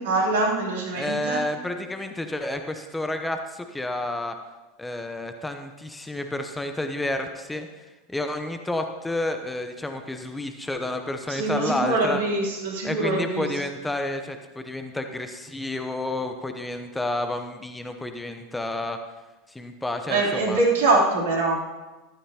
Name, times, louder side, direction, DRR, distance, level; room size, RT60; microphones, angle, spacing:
voice 1, 0.0-1.4 11.3-13.5 20.1-21.6, right 2 dB, 65° right, -2 dB, 3.5 m, -23 dB
voice 2, 0.9-4.3 4.8-7.7 8.1-12.2 12.8-19.0 19.5-20.6, left 1 dB, 10° left, 6 dB, 0.9 m, -30 dB
15.0 x 13.0 x 3.0 m, 1.2 s
figure-of-eight pair, 80°, 0 cm